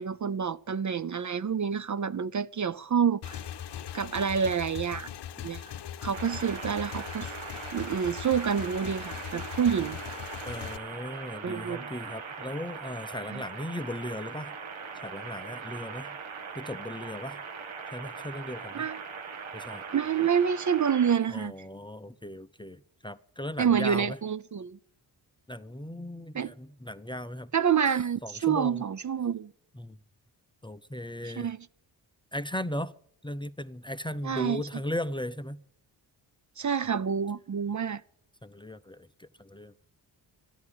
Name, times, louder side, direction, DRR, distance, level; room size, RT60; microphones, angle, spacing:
voice 1, 0.0-3.4 3.9-5.1 5.4-5.6 6.0-7.3 7.7-10.0 11.4-11.9 13.3-13.4 18.7-19.0 19.9-21.5 23.6-24.8 26.3-26.5 27.5-29.5 31.2-31.6 34.2-34.6 36.6-38.0, right 7 dB, 40° right, 0.6 m, -28 dB
Motorcycle / Engine, 3.2-10.8, left 10 dB, 60° left, 0.8 m, -40 dB
sound 1, 6.1-21.1, right 5 dB, 80° right, 1.8 m, -41 dB
voice 2, 10.4-14.6 14.9-16.2 16.5-17.4 17.9-18.9 19.5-19.8 21.3-24.2 25.5-27.5 28.2-28.8 29.7-30.0 30.6-31.5 32.3-32.9 33.2-35.6 38.4-39.9, left 1 dB, 10° left, 0.6 m, -37 dB
12.5 x 11.0 x 8.6 m
cardioid pair, 60°, 46 cm